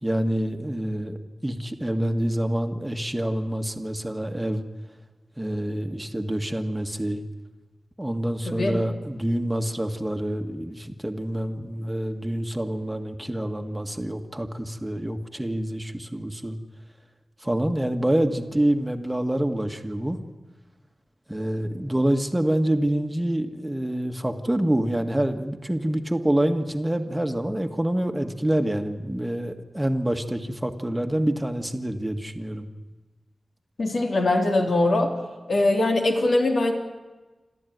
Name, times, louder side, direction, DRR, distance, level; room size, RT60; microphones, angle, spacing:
voice 1, 0.0-4.6 5.4-7.2 8.0-16.6 17.4-20.2 21.3-32.7, right 1 dB, 10° right, 5 dB, 1.7 m, -26 dB
voice 2, 8.4-8.8 33.8-35.1 35.5-36.7, left 2 dB, 65° left, 2 dB, 3.3 m, -22 dB
27.5 x 14.0 x 9.4 m, 1.2 s
wide cardioid pair, 115°, 0 cm